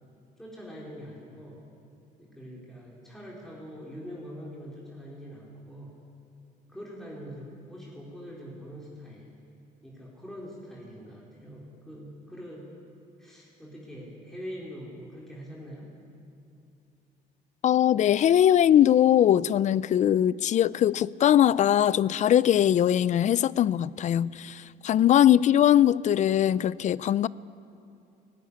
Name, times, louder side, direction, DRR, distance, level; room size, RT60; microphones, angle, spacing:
voice 1, 0.4-1.6 2.2-6.0 6.7-9.3 9.8-12.7 13.2-15.9, equal, ahead, 4.0 m, -43 dB
voice 2, 17.6-27.3, left 11 dB, 45° left, 0.4 m, -21 dB
17.5 x 16.0 x 9.9 m
cardioid pair, 110°, 17 cm